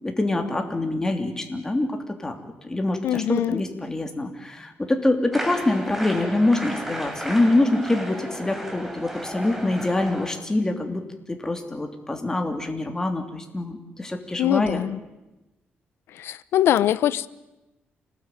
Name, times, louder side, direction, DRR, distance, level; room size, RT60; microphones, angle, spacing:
voice 1, 0.0-2.4 2.6-14.8, left 2 dB, 15° left, 3.0 m, -25 dB
voice 2, 3.0-3.6 14.4-15.0 16.2-17.3, left 12 dB, 90° left, 0.9 m, -22 dB
sound 1, 5.3-10.3, right 1 dB, 5° right, 3.8 m, -34 dB
27.5 x 19.5 x 9.3 m
cardioid pair, 140°, 4 cm